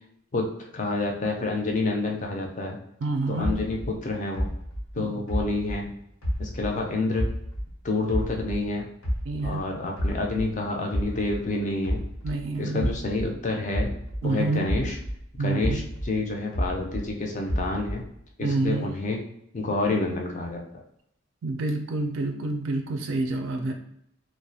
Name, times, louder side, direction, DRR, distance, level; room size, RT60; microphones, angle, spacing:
voice 1, 0.3-2.8 3.3-4.5 4.9-5.9 6.4-7.3 7.8-8.9 9.4-12.0 12.6-13.9 14.2-15.0 15.4-18.0 18.4-19.2 19.5-20.6, left 2 dB, 35° left, 1 dB, 0.4 m, -28 dB
voice 2, 3.0-3.5 5.0-5.2 9.3-9.7 12.2-12.9 14.2-14.7 15.4-15.8 18.4-18.9 21.4-23.7, right 2 dB, 65° right, 4 dB, 0.3 m, -28 dB
sound 1, 3.4-6.8 7.2-9.6 10.0-14.3 14.7-17.1 17.5-18.2, equal, 85° left, 0.9 m, -30 dB
2.3 x 2.0 x 2.6 m, 0.73 s
head